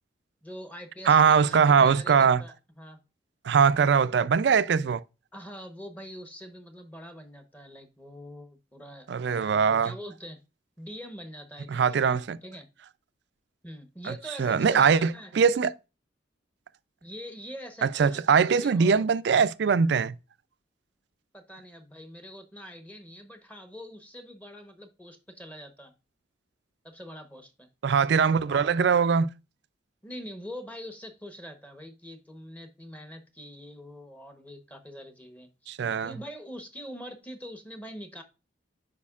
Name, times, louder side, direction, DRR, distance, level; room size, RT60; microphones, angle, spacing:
voice 1, 0.4-3.0 5.3-10.4 10.8-12.1 12.4-12.6 13.6-15.3 17.0-19.0 21.3-25.9 26.8-27.7 28.5-28.7 30.0-35.5 36.0-38.2, equal, 10° left, 0.9 m, -44 dB
voice 2, 1.1-2.4 3.4-5.0 9.1-9.9 11.7-12.4 14.1-14.2 14.4-15.7 17.8-20.1 27.8-29.3 35.7-36.1, right 6 dB, 65° right, 0.4 m, -22 dB
8.3 x 5.2 x 2.4 m
head